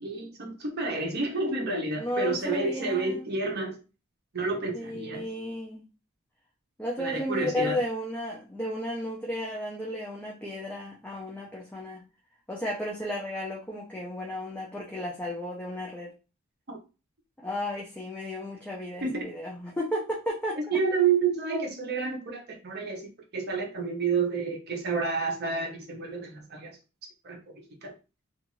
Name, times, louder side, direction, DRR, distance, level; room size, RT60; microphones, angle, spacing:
voice 1, 0.0-3.8 4.3-5.2 7.0-7.8 16.7-16.8 19.0-19.3 20.6-26.8 27.2-27.9, right 4 dB, 50° right, 2 dB, 0.7 m, -30 dB
voice 2, 2.0-3.3 4.7-5.9 6.8-12.0 12.5-16.1 17.4-20.8, left 1 dB, 5° left, -3 dB, 0.5 m, -33 dB
2.6 x 2.4 x 3.0 m, 0.31 s
head